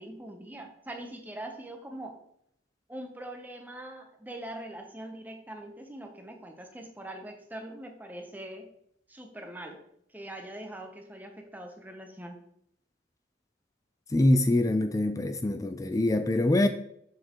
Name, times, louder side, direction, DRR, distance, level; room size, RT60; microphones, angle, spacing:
voice 1, 0.0-2.2 2.9-8.7 9.1-9.8 10.1-12.5, right 1 dB, 10° right, 0.8 m, -42 dB
voice 2, 14.1-16.7, left 1 dB, 15° left, 0.4 m, -24 dB
7.1 x 6.6 x 3.0 m
head